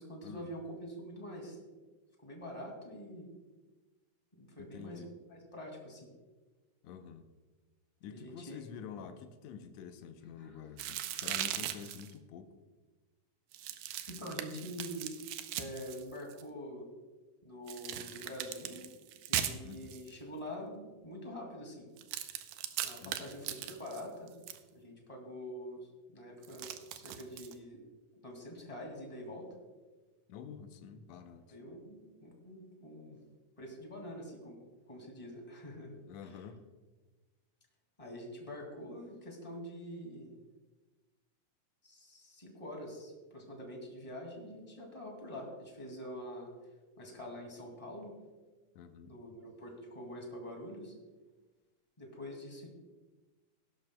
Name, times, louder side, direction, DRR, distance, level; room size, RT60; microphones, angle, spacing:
voice 1, 0.0-1.6 2.2-3.3 4.3-5.0 5.3-6.1 8.1-8.6 10.4-10.5 14.1-15.2 15.6-16.9 17.4-18.8 19.3-21.9 22.8-24.3 24.7-27.8 28.2-29.5 31.5-33.2 33.6-34.6 34.9-35.9 38.0-40.3 41.8-46.5 47.0-48.1 49.1-51.0 52.0-52.7, equal, 15° left, 0 dB, 1.8 m, -45 dB
voice 2, 4.6-5.2 6.8-7.3 8.0-12.5 19.6-20.0 23.0-23.3 30.3-31.6 36.1-36.7 48.8-49.2, left 7 dB, 75° left, 7 dB, 1.7 m, -48 dB
sound 1, 10.8-12.1 13.5-16.4 17.7-20.1 22.0-24.6 26.4-27.5, right 11 dB, 85° right, 2.3 m, -39 dB
17.5 x 11.5 x 2.3 m, 1.2 s
omnidirectional pair, 3.8 m